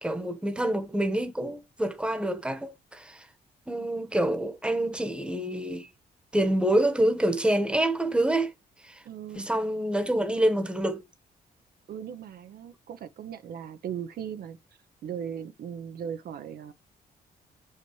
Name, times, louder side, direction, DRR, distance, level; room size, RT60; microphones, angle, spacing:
voice 1, 0.0-3.3 3.7-5.9 6.3-8.5 8.8-9.0 9.3-11.0, right 1 dB, 5° right, 1.2 m, -27 dB
voice 2, 9.0-9.5 11.9-14.6 15.0-16.7, right 8 dB, 65° right, 0.8 m, -38 dB
6.1 x 5.7 x 3.1 m
cardioid pair, 100°, 17 cm